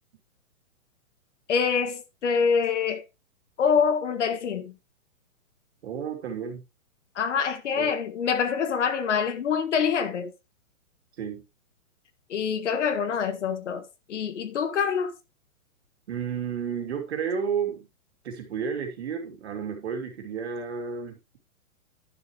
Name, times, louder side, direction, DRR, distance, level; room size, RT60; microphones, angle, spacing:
voice 1, 1.5-3.0 3.6-4.7 7.1-10.3 12.3-15.1, left 6 dB, 55° left, 1.7 m, -25 dB
voice 2, 5.8-6.6 7.7-7.9 11.2-11.4 16.1-17.9 18.2-21.4, right 6 dB, 50° right, 3.0 m, -32 dB
11.5 x 7.1 x 3.2 m
hypercardioid pair, 170°, 42 cm